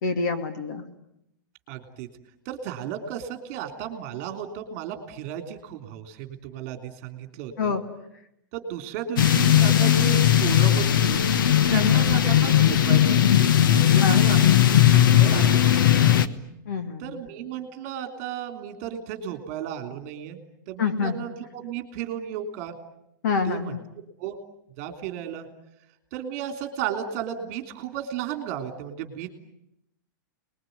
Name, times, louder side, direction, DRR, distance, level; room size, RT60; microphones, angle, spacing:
voice 1, 0.0-0.8 7.6-7.8 11.7-12.1 14.0-14.2 16.7-17.1 20.8-21.2 23.2-23.8, left 5 dB, 60° left, 8 dB, 2.6 m, -26 dB
voice 2, 1.7-2.1 2.4-7.7 8.5-11.2 11.7-16.2 17.0-20.4 20.7-22.7 23.5-23.7 24.2-24.4 24.8-25.5 26.1-29.3, right 9 dB, 35° right, 6 dB, 3.3 m, -34 dB
sound 1, 9.2-16.3, left 11 dB, 75° left, 1.3 m, -18 dB
29.5 x 21.0 x 9.4 m, 0.81 s
supercardioid pair, 175°, 11 cm